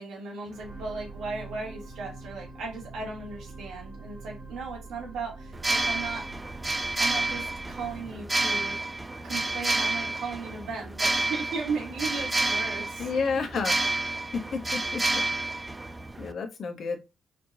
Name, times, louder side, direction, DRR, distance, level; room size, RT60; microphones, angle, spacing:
voice 1, 0.0-6.3 7.0-8.8 9.2-13.1, right 4 dB, 80° right, -1 dB, 2.0 m, -36 dB
sound 1, 0.5-12.9 13.5-13.6, right 3 dB, 50° right, 1.6 m, -46 dB
sound 2, 5.5-16.3, right 2 dB, 15° right, 0.4 m, -29 dB
voice 2, 13.0-13.8 14.3-15.2 16.2-17.0, left 5 dB, 55° left, 6 dB, 0.9 m, -30 dB
4.3 x 2.9 x 2.7 m, 0.24 s
cardioid pair, 90°, 0 cm